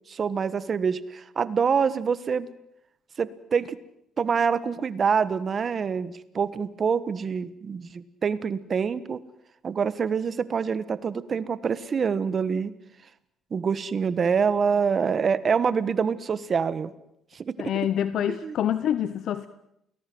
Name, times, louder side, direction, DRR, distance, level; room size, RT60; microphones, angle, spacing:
voice 1, 0.1-2.5 3.2-3.8 4.2-9.2 9.6-12.7 13.5-16.9 17.3-17.7 18.3-18.6, right 6 dB, 40° right, 16 dB, 1.4 m, -26 dB
voice 2, 17.6-19.5, left 10 dB, 65° left, 14 dB, 1.0 m, -26 dB
29.0 x 19.5 x 7.8 m, 0.77 s
cardioid pair, 105°, 0 cm